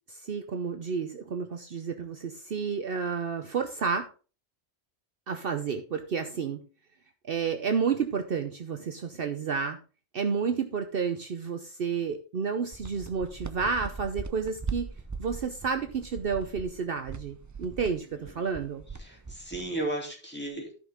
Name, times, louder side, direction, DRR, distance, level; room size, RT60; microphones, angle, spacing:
voice 1, 0.1-4.1 5.3-6.6 7.3-9.8 10.1-14.9 15.2-18.8, right 6 dB, 60° right, 6 dB, 0.9 m, -31 dB
sound 1, 12.7-19.8, right 4 dB, 25° right, 0.4 m, -40 dB
voice 2, 18.1-18.5 19.0-20.8, right 2 dB, 10° left, -1 dB, 2.9 m, -35 dB
13.5 x 5.5 x 3.6 m, 0.36 s
omnidirectional pair, 1.2 m